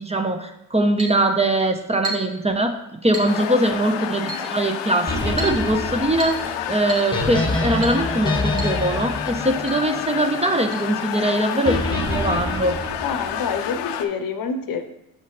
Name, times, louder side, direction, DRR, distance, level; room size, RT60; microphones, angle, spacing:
voice 1, 0.0-2.8 3.0-12.8, right 1 dB, 15° right, 6 dB, 0.8 m, -22 dB
Chink clink, 1.0-1.2 2.0-2.4 3.1-3.4 4.3-4.5 5.4-5.6 6.2-6.5 6.9-7.1 7.8-8.0 8.6-8.8 9.0-9.1 9.7-9.8 10.7-10.8, right 2 dB, 35° right, 1.9 m, -32 dB
sound 1, 3.3-14.1, left 9 dB, 85° left, 0.6 m, -30 dB
voice 2, 3.4-3.8 13.0-14.8, left 5 dB, 55° left, 8 dB, 0.8 m, -27 dB
sound 2, 5.1-10.4 11.7-13.6, left 2 dB, 10° left, 1.5 m, -26 dB
7.3 x 5.5 x 3.1 m, 0.84 s
supercardioid pair, 55°, 41 cm